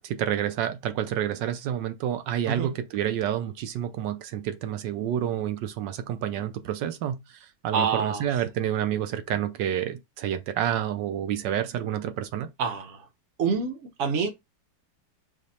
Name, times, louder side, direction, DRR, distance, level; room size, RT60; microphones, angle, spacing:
voice 1, 0.0-7.2 7.6-12.5, right 10 dB, 70° right, 1.2 m, -29 dB
voice 2, 7.7-8.4 12.6-13.1 13.4-14.3, right 5 dB, 50° right, 0.9 m, -27 dB
5.0 x 2.2 x 4.1 m
omnidirectional pair, 2.2 m